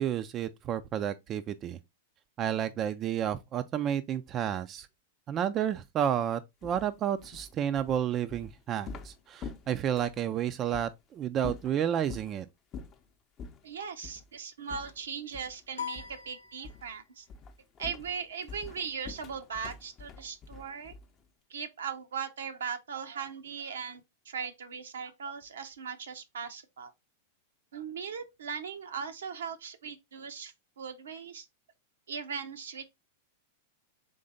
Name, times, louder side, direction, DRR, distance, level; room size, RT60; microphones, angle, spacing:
voice 1, 0.0-1.8 2.4-4.9 5.3-12.5, right 9 dB, 35° right, 0.3 m, -31 dB
sound 1, 6.6-10.3 10.7-10.9 11.4-12.3 12.7-13.0 13.4-13.6 14.0-14.3 14.7-15.6 15.9-16.3 16.6-17.0 17.3-21.2, left 5 dB, 35° left, 0.6 m, -45 dB
voice 2, 13.6-17.3 17.8-20.9 21.5-26.9 27.7-31.5 32.1-32.9, right 6 dB, 80° right, 0.7 m, -39 dB
sound 2, 15.8-17.2, left 7 dB, 90° left, 0.8 m, -41 dB
3.8 x 3.3 x 3.9 m
hypercardioid pair, 105°, 0 cm